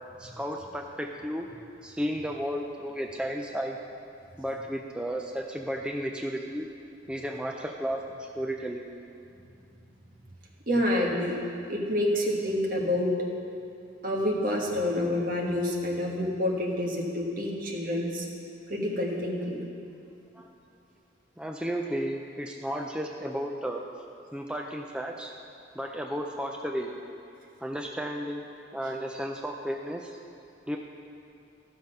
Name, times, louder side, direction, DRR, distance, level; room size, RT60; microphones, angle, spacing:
voice 1, 0.2-1.5 1.8-3.8 4.4-6.7 7.1-8.9 20.3-20.5 21.4-23.8 24.3-25.3 25.8-26.9 27.6-28.4 28.7-30.2 30.7-30.8, equal, 5° right, 1 dB, 0.4 m, -33 dB
voice 2, 10.7-11.3 11.7-13.2 14.0-18.3 18.7-19.6, left 1 dB, 45° right, -2 dB, 1.4 m, -28 dB
13.5 x 6.4 x 5.4 m, 2.5 s
head